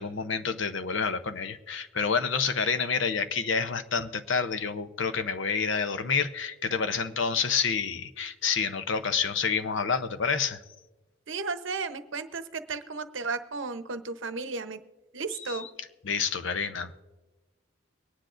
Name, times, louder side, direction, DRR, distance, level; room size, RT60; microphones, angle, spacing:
voice 1, 0.0-10.6 15.4-15.7 16.0-17.0, left 5 dB, 65° left, 11 dB, 0.7 m, -28 dB
voice 2, 11.3-14.8 15.1-15.7, right 4 dB, 65° right, 10 dB, 0.8 m, -34 dB
23.0 x 10.0 x 2.5 m, 1.2 s
head